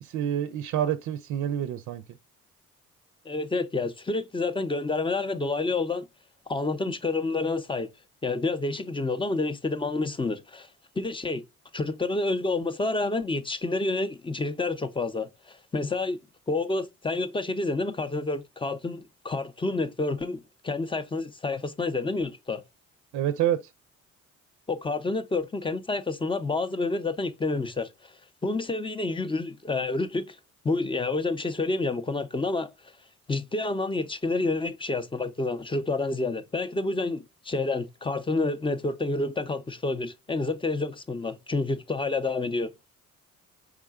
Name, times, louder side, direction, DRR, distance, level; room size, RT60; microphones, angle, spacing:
voice 1, 0.0-2.0 23.1-23.7, right 10 dB, 75° right, 0.5 m, -28 dB
voice 2, 3.3-6.1 6.5-7.9 8.2-10.7 11.0-11.4 11.7-16.2 16.5-22.6 24.7-28.1 28.4-30.4 30.6-32.7 33.3-42.7, left 3 dB, 15° left, 0.5 m, -29 dB
4.7 x 3.6 x 2.3 m
cardioid pair, 90°, 30 cm